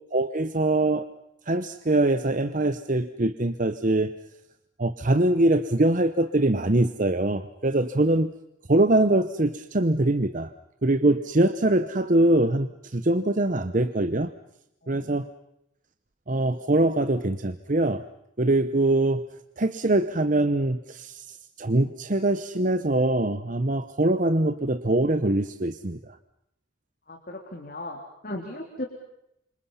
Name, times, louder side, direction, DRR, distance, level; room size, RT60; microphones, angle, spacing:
voice 1, 0.1-1.1 1.5-4.1 4.8-8.3 8.7-10.5 10.8-14.3 14.9-15.3 16.3-18.0 18.4-19.3 19.6-26.2, right 2 dB, 40° right, 11 dB, 0.9 m, -23 dB
voice 2, 27.1-28.9, left 1 dB, 45° left, 1 dB, 3.7 m, -37 dB
28.5 x 26.5 x 5.7 m, 0.81 s
head